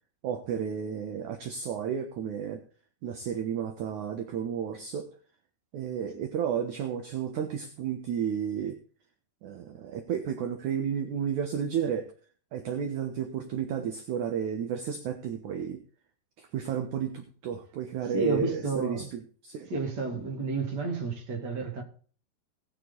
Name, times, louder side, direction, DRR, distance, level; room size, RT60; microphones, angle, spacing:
voice 1, 0.2-2.6 3.0-5.1 5.7-8.8 9.4-12.1 12.5-15.8 16.4-19.7, right 8 dB, 65° right, 2.1 m, -32 dB
voice 2, 18.1-19.1 19.7-21.8, right 3 dB, 30° right, 2.9 m, -31 dB
18.5 x 6.9 x 4.0 m
omnidirectional pair, 4.7 m